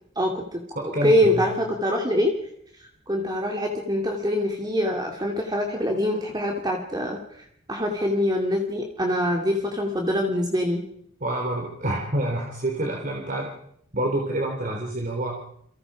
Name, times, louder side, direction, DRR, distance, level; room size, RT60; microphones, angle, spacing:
voice 1, 0.2-2.3 3.1-7.2 7.7-10.8, left 1 dB, 20° right, 1 dB, 2.7 m, -24 dB
voice 2, 0.8-1.4 11.2-13.5 13.9-15.4, right 1 dB, 40° right, 0 dB, 3.5 m, -27 dB
29.5 x 24.0 x 5.0 m, 0.71 s
head